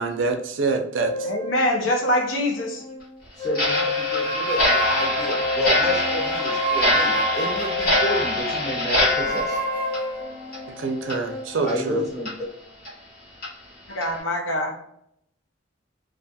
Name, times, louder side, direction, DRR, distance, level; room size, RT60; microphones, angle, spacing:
voice 1, 0.0-1.3 10.7-12.0, right 4 dB, 80° right, 0.5 m, -26 dB
sound 1, 1.0-3.0 3.4-8.2 8.9-11.5, equal, 25° left, 0.8 m, -29 dB
voice 2, 1.2-2.8 13.9-14.8, left 1 dB, 85° left, 0.5 m, -24 dB
voice 3, 3.4-9.6 11.6-12.3, left 1 dB, 5° left, 1.1 m, -30 dB
Clock, 3.5-10.7 11.0-11.2 11.7-11.8 12.3-12.4 12.8-12.9 13.4-13.5 14.0-14.2, left 1 dB, 50° left, 1.1 m, -24 dB
2.3 x 2.3 x 2.6 m
head